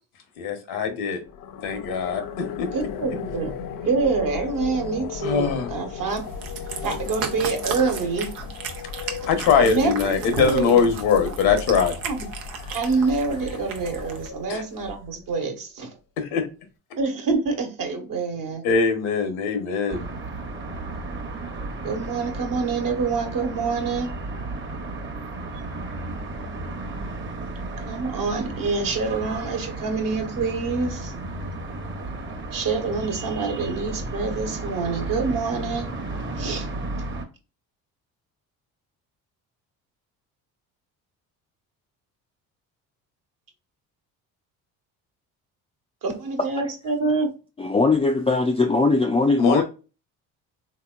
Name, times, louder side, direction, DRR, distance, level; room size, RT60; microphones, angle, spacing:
voice 1, 0.4-1.2 1.6-2.7 5.2-5.7 9.0-11.9 14.5-14.6 16.2-16.5 18.6-20.1 49.4-49.6, left 6 dB, 75° left, 1.0 m, -22 dB
sound 1, 1.2-15.3, left 7 dB, 55° left, 0.6 m, -36 dB
voice 2, 2.7-3.5 3.9-6.2 6.8-8.3 9.6-10.1 10.4-10.8 11.8-12.3 12.7-15.9 17.0-18.6 21.8-24.1 27.9-31.1 32.5-35.9 36.4-36.7 46.0-47.3, right 4 dB, 55° right, 1.2 m, -26 dB
Cat, 6.1-14.3, right 6 dB, 90° right, 0.7 m, -35 dB
sound 2, 19.9-37.2, right 2 dB, 30° right, 0.9 m, -33 dB
voice 3, 47.6-49.6, left 3 dB, 15° left, 0.4 m, -20 dB
3.6 x 2.9 x 2.3 m
supercardioid pair, 65°, 38 cm